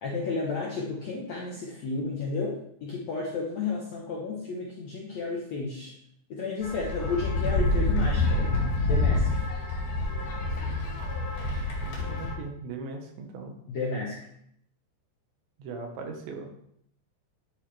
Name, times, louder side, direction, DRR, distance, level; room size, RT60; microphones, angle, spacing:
voice 1, 0.0-5.9 6.3-9.4 13.7-14.2, left 4 dB, 70° left, -2 dB, 1.6 m, -32 dB
sound 1, 6.6-12.3, left 2 dB, 55° left, 3.0 m, -27 dB
voice 2, 11.8-13.5 15.6-16.5, right 4 dB, 85° right, 3 dB, 3.7 m, -39 dB
10.5 x 8.2 x 3.4 m, 0.71 s
omnidirectional pair, 5.0 m